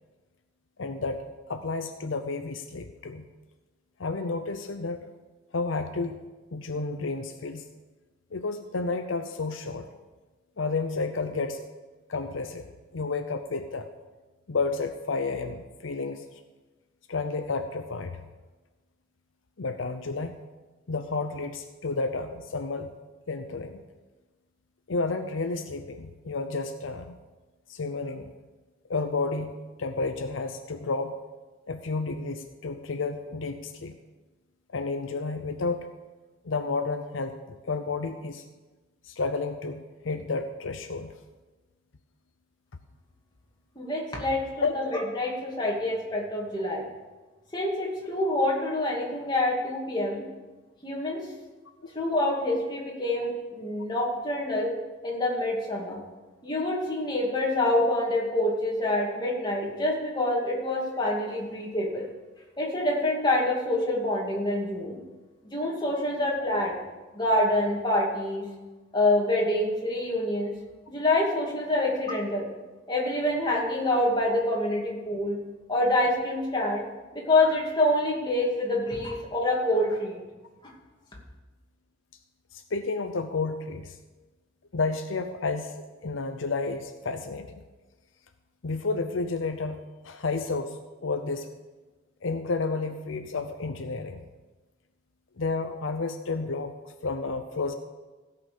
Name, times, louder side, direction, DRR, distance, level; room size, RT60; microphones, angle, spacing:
voice 1, 0.8-3.3 4.0-5.0 5.5-6.2 6.5-7.7 8.3-9.8 10.6-11.7 12.1-12.7 12.9-13.9 14.5-16.3 17.1-18.2 19.6-20.4 20.9-23.0 23.3-23.8 24.9-27.2 27.7-28.3 28.9-31.1 31.7-34.0 34.7-35.9 36.4-38.4 39.0-41.1 44.6-44.9 82.5-84.0 84.7-85.7 86.0-87.6 88.6-91.5 92.2-94.2 95.4-96.7 97.0-97.7, left 3 dB, 75° left, 7 dB, 0.7 m, -31 dB
voice 2, 43.8-46.8 47.5-50.2 50.8-51.2 51.9-54.7 55.0-56.0 56.4-62.0 62.6-65.0 65.5-66.8 67.1-68.4 68.9-70.5 70.9-72.5 72.9-75.4 75.7-76.8 77.1-80.2, left 1 dB, 20° left, -3 dB, 2.5 m, -26 dB
16.5 x 5.8 x 6.9 m, 1.2 s
head